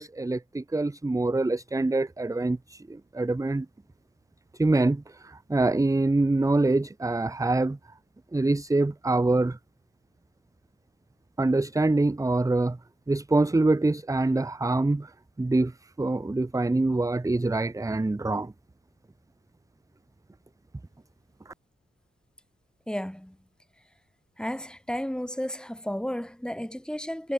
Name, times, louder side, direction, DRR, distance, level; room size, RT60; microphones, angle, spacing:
voice 1, 0.0-2.8 3.1-3.7 4.6-7.8 8.3-9.6 11.4-12.8 13.1-15.1 15.4-15.7 16.0-18.5, right 2 dB, 15° right, 0.9 m, -25 dB
voice 2, 22.9-23.4 24.4-27.3, equal, 5° left, 7.1 m, -32 dB
wide cardioid pair, 110°, 21 cm